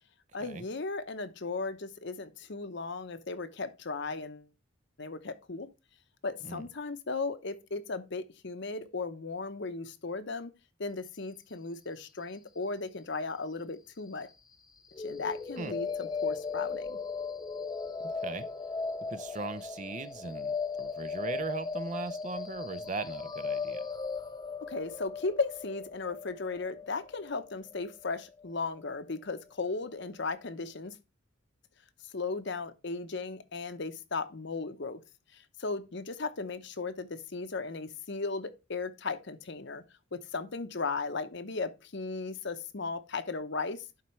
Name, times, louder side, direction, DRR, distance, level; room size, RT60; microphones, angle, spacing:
voice 1, 0.3-4.5 5.0-5.7 6.2-10.5 10.8-14.3 15.0-17.0 24.7-31.0 32.1-35.0 35.3-39.8 40.1-43.8, left 3 dB, 55° left, 0.8 m, -36 dB
sound 1, 14.9-28.9, left 5 dB, 20° left, 0.5 m, -37 dB
voice 2, 18.0-18.5 19.1-23.9, right 3 dB, 35° right, 0.6 m, -39 dB
11.5 x 4.5 x 3.1 m
head